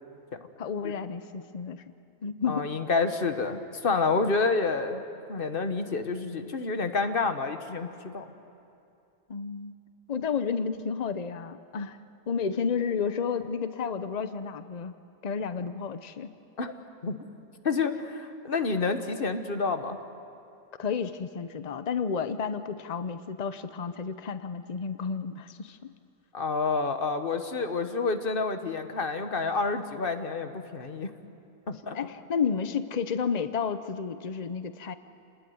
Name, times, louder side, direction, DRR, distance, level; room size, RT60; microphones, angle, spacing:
voice 1, 0.6-1.8 2.2-2.7 9.3-9.7 10.1-12.0 12.3-14.9 15.2-16.3 20.8-25.9 31.9-34.9, left 6 dB, 80° left, 11 dB, 0.3 m, -31 dB
voice 2, 2.5-5.0 5.3-8.3 16.6-16.7 17.0-17.2 17.6-20.0 26.3-31.1 31.7-32.0, left 4 dB, 35° left, 8 dB, 1.3 m, -28 dB
28.0 x 20.0 x 9.4 m, 2.7 s
omnidirectional pair, 1.9 m